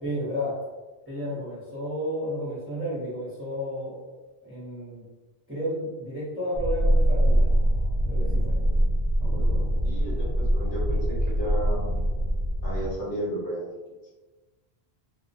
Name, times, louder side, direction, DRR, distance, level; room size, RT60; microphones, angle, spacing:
voice 1, 0.0-0.6 1.1-4.0 4.4-5.0 5.5-7.5 8.0-8.5 9.2-9.7, equal, 15° right, -9 dB, 0.7 m, -32 dB
sound 1, 6.6-12.9, equal, 80° left, 0.9 m, -23 dB
voice 2, 9.8-11.9 12.6-13.7, right 1 dB, 60° left, -6 dB, 0.9 m, -33 dB
2.2 x 2.2 x 2.6 m, 1.2 s
omnidirectional pair, 1.1 m